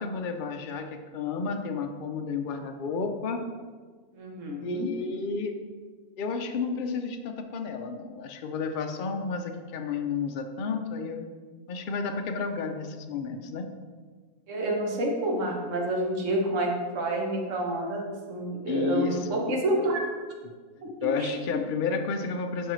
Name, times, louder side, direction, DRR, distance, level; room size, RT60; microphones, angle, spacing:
voice 1, 0.0-3.5 4.6-5.6 6.2-11.3 11.7-13.7 18.7-19.4 21.0-22.7, left 4 dB, 70° left, 4 dB, 0.5 m, -31 dB
voice 2, 4.2-4.9 14.5-20.0 20.8-21.6, right 1 dB, 60° right, 0 dB, 1.4 m, -29 dB
11.0 x 4.6 x 3.1 m, 1.5 s
omnidirectional pair, 1.5 m